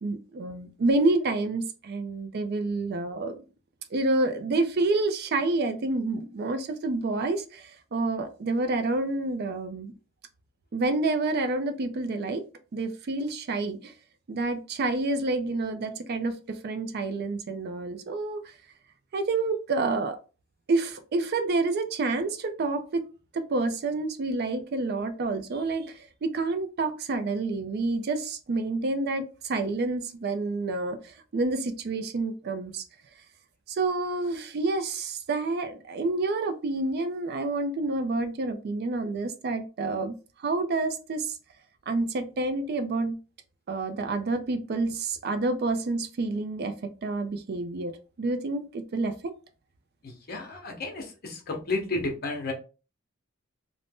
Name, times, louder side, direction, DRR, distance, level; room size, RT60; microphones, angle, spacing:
voice 1, 0.0-3.4 3.9-9.9 10.7-12.5 12.7-13.9 14.3-18.5 19.1-20.2 20.7-23.1 23.3-32.8 33.7-41.3 41.9-43.2 43.7-47.9 48.2-49.3, right 3 dB, 50° right, 0.4 m, -28 dB
voice 2, 50.0-52.5, left 3 dB, 50° left, 0.8 m, -32 dB
2.5 x 2.1 x 3.4 m
head